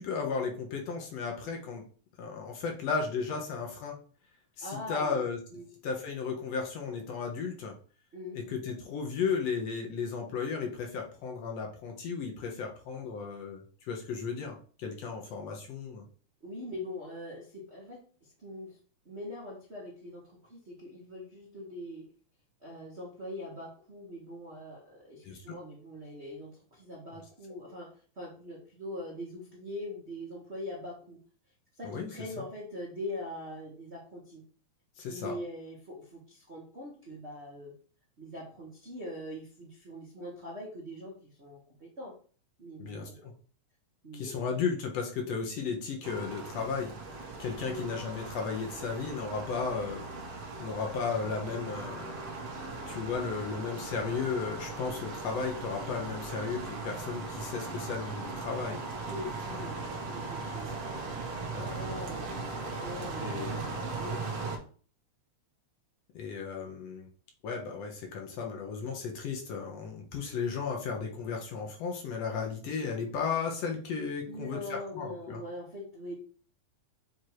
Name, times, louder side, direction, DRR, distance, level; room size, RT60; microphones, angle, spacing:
voice 1, 0.0-1.8 2.2-4.0 4.6-5.4 5.8-7.8 8.3-16.1 25.2-25.6 31.8-32.1 32.4-32.5 35.0-35.3 42.8-43.3 44.1-46.9 47.4-50.0 50.6-52.1 52.9-58.8 61.5-61.8 63.2-63.6 66.1-67.1 67.4-75.4, left 5 dB, 65° left, 1 dB, 1.9 m, -34 dB
voice 2, 4.6-5.2 5.5-5.7 8.1-8.4 16.4-18.8 19.0-22.1 22.6-31.2 31.8-34.4 35.1-37.7 38.2-42.1 42.6-43.3 44.0-44.5 47.6-47.9 59.1-59.8 60.1-60.8 61.7-62.3 62.6-64.2 74.3-76.1, left 1 dB, 35° right, -5 dB, 1.0 m, -42 dB
sound 1, 46.0-64.6, right 3 dB, 65° right, 2.1 m, -39 dB
7.6 x 2.7 x 4.7 m, 0.42 s
omnidirectional pair, 3.4 m